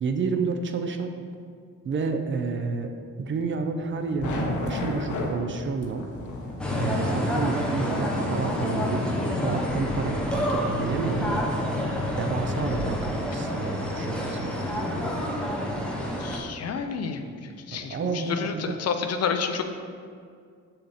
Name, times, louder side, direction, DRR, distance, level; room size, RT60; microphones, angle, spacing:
voice 1, 0.0-1.2 1.8-2.9 3.2-6.1 6.8-9.0 9.4-11.4 12.2-14.6 17.7-18.8, right 4 dB, 40° right, 6 dB, 0.6 m, -30 dB
sound 1, 3.8-10.1, left 2 dB, 75° left, 1.3 m, -34 dB
sound 2, 6.6-16.4, left 1 dB, 5° left, 0.9 m, -28 dB
voice 2, 16.2-19.6, left 6 dB, 55° left, 7 dB, 0.7 m, -30 dB
7.5 x 6.6 x 4.2 m, 2.2 s
cardioid pair, 165°, 30 cm